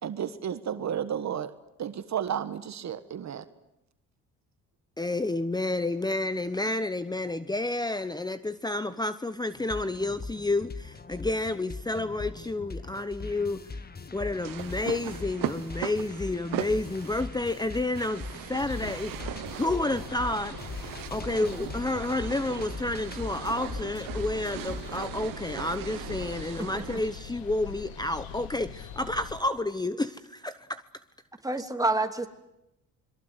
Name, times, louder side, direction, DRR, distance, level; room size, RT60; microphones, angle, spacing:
voice 1, 0.0-1.5 1.8-3.5, right 9 dB, 50° right, 1.5 m, -32 dB
voice 2, 5.0-13.6 14.1-30.8, left 2 dB, 10° left, 1.0 m, -30 dB
sound 1, 9.5-25.0, left 3 dB, 25° left, 1.5 m, -41 dB
sound 2, 14.4-27.2, right 14 dB, 75° right, 1.4 m, -39 dB
sound 3, 18.5-29.4, left 8 dB, 85° left, 2.2 m, -43 dB
voice 3, 31.4-32.3, right 2 dB, 10° right, 2.9 m, -28 dB
26.5 x 23.0 x 8.1 m
supercardioid pair, 70°, 34 cm